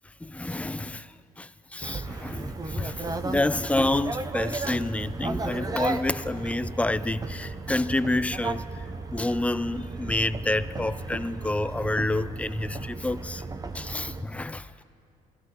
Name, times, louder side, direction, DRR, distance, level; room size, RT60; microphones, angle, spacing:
voice 1, 0.2-8.7 9.1-13.4 13.7-14.7, left 2 dB, 10° left, 0.3 m, -28 dB
sound 1, 1.8-14.2, right 3 dB, 20° right, 0.7 m, -35 dB
24.0 x 16.5 x 3.0 m
cardioid pair, 110°, 17 cm